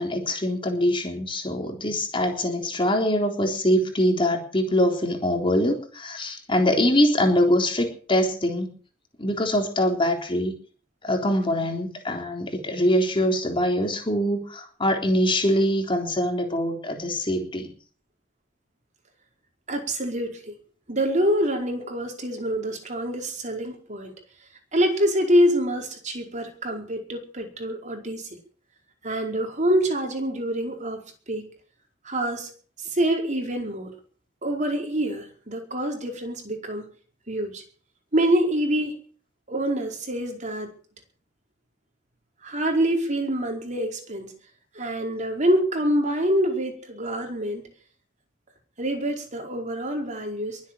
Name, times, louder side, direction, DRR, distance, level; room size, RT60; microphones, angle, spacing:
voice 1, 0.0-8.7 9.2-10.5 11.0-17.7, left 1 dB, 30° left, 2 dB, 3.7 m, -23 dB
voice 2, 19.7-20.5 20.9-24.1 24.7-28.3 29.0-31.5 32.0-32.5 32.8-33.9 34.4-36.9 37.3-37.6 38.1-39.0 39.5-40.7 42.4-44.3 44.7-47.6 48.8-50.6, equal, 40° right, 3 dB, 4.8 m, -26 dB
22.5 x 8.3 x 7.5 m, 0.43 s
head